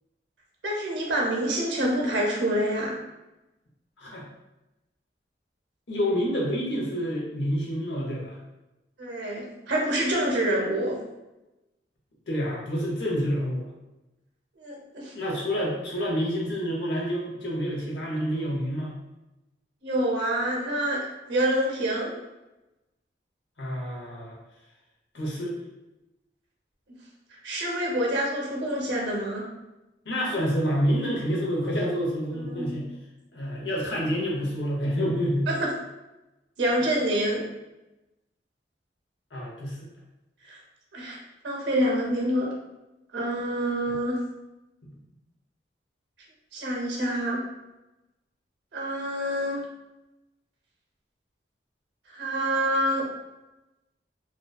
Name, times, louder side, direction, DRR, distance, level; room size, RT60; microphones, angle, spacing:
voice 1, 0.6-3.0 9.0-11.0 14.6-15.1 19.8-22.1 26.9-27.0 27.4-29.4 32.3-32.8 35.5-35.7 36.6-37.4 40.5-40.6 40.9-41.2 41.4-42.5 43.1-44.2 46.5-47.4 48.7-49.6 52.1-53.1, right 1 dB, 85° right, -1 dB, 0.6 m, -27 dB
voice 2, 5.9-8.4 12.3-13.7 15.1-19.0 23.6-24.4 25.1-25.5 30.0-32.9 33.3-35.5 39.3-39.8, equal, 80° left, -3 dB, 0.7 m, -28 dB
2.7 x 2.2 x 2.2 m, 1.0 s
head